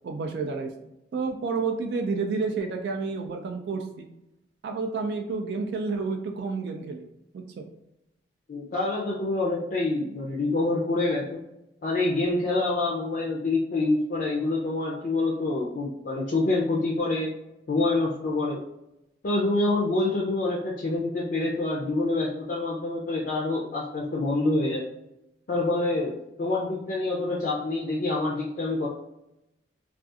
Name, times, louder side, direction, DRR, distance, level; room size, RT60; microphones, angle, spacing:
voice 1, 0.0-0.7 1.1-4.1 4.6-7.1 7.3-7.7, right 4 dB, 65° right, 3 dB, 0.3 m, -30 dB
voice 2, 8.5-11.4 11.8-17.3 17.7-18.6 19.2-24.9 25.5-28.9, left 2 dB, 50° left, -4 dB, 0.4 m, -26 dB
2.4 x 2.4 x 2.6 m, 0.88 s
head